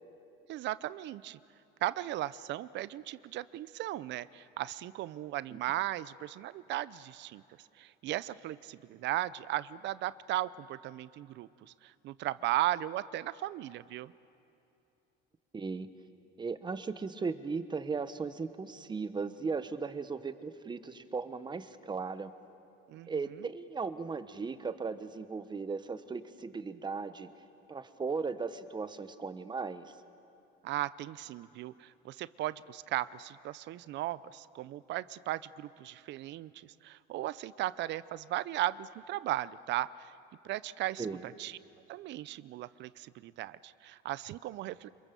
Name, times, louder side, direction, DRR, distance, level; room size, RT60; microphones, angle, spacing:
voice 1, 0.5-1.4 1.8-7.4 7.8-14.1 22.9-23.5 30.6-40.1 40.4-41.6 41.9-44.9, right 14 dB, 60° right, 18 dB, 0.6 m, -36 dB
voice 2, 15.5-15.9 16.4-22.3 23.1-27.3 27.7-29.9 41.0-41.2, right 4 dB, 20° right, 12 dB, 1.1 m, -37 dB
26.5 x 23.0 x 6.9 m, 2.8 s
supercardioid pair, 110°, 21 cm